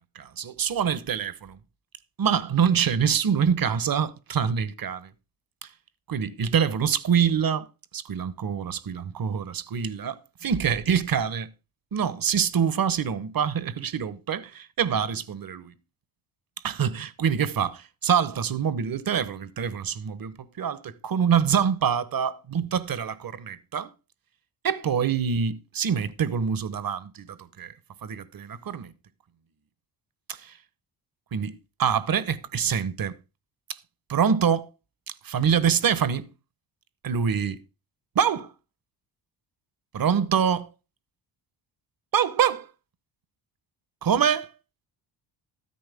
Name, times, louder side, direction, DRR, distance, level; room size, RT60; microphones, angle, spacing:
voice 1, 0.1-1.6 2.2-5.1 6.1-7.7 7.9-11.5 11.9-15.7 16.6-23.9 24.6-27.7 28.0-28.9 30.3-30.5 31.3-33.1 33.7-33.8 34.1-34.7 35.1-36.3 37.0-37.6 38.1-38.5 39.9-40.7 42.1-42.7 44.0-44.5, right 7 dB, 45° right, 1.1 m, -25 dB
13.0 x 9.6 x 3.5 m
supercardioid pair, 65°, 49 cm